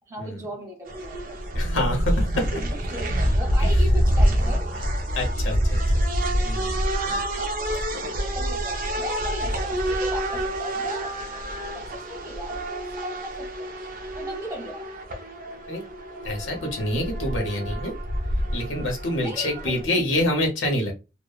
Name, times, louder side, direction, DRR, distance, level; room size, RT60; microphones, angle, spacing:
voice 1, 0.1-1.4 2.5-4.6 7.4-7.6 7.9-11.2 11.6-13.7 14.1-14.9 19.2-20.3, left 1 dB, 15° right, 0 dB, 0.9 m, -37 dB
sound 1, 0.9-19.8, equal, 45° right, 0.4 m, -26 dB
voice 2, 1.5-2.3 3.6-3.7 5.1-6.0 6.4-6.9 15.7-15.8 16.2-17.9 18.5-20.9, left 1 dB, 85° left, 2 dB, 0.9 m, -27 dB
2.9 x 2.0 x 2.2 m, 0.29 s
head